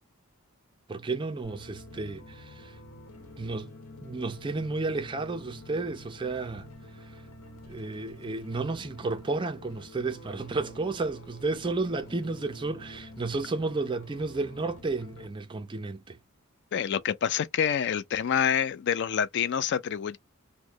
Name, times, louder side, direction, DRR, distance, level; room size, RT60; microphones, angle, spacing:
voice 1, 0.9-2.7 3.4-3.7 4.0-6.7 7.7-16.2, right 3 dB, 20° right, 0.4 m, -32 dB
sound 1, 1.4-15.3, left 1 dB, 70° left, 1.1 m, -48 dB
voice 2, 16.7-20.2, left 8 dB, 50° left, 0.3 m, -27 dB
3.0 x 2.0 x 3.7 m
head